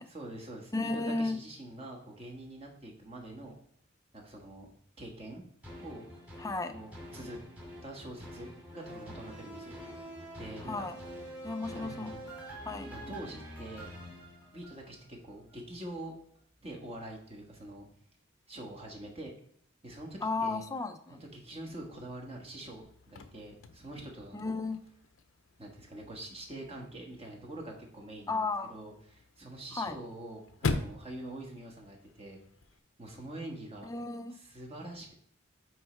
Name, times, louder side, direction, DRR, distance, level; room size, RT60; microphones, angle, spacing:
voice 1, 0.1-3.6 4.1-4.7 5.0-5.4 5.8-6.1 6.7-7.4 7.8-9.8 10.4-10.9 11.7-12.3 12.9-14.0 14.5-16.1 16.6-17.9 18.5-19.3 19.8-20.6 21.1-24.6 25.6-28.4 28.7-32.4 33.0-33.9 34.3-35.1, right 1 dB, 30° right, 0 dB, 1.4 m, -45 dB
voice 2, 0.7-1.4 6.4-6.8 10.6-11.0 11.4-12.2 12.6-12.9 20.2-21.2 24.3-24.8 28.3-28.7 29.7-29.9 33.8-34.4, left 3 dB, 15° left, 9 dB, 0.4 m, -34 dB
sound 1, 5.6-15.0 15.5-15.6, equal, 5° right, 2.3 m, -46 dB
Chirp tweet / Car / Slam, 22.8-32.8, left 3 dB, 80° left, 0.6 m, -42 dB
9.0 x 3.2 x 4.5 m, 0.63 s
head